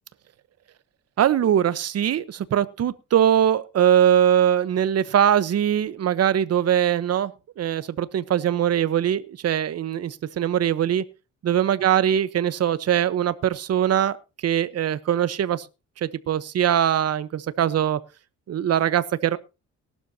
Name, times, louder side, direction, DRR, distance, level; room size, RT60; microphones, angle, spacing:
voice 1, 1.2-7.3 7.6-11.0 11.4-14.2 14.4-15.7 16.0-18.0 18.5-19.4, right 10 dB, 55° right, 1.0 m, -21 dB
18.0 x 12.0 x 2.8 m
cardioid pair, 90°, 30 cm